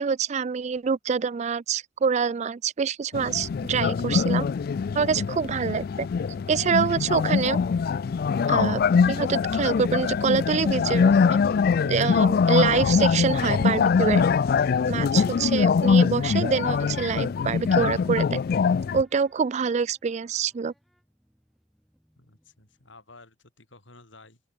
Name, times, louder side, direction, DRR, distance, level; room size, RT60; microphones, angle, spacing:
voice 1, 0.0-4.5 4.9-6.1 6.5-7.6 8.5-8.8 9.1-11.4 11.9-14.2 14.9-18.4 18.9-20.7, right 6 dB, 35° right, 0.3 m, -26 dB
sound 1, 3.1-19.0, left 5 dB, 50° left, 0.3 m, -23 dB
sound 2, 15.8-23.1, equal, ahead, 7.9 m, -62 dB
voice 2, 22.2-24.4, left 3 dB, 70° left, 6.2 m, -53 dB
open air
head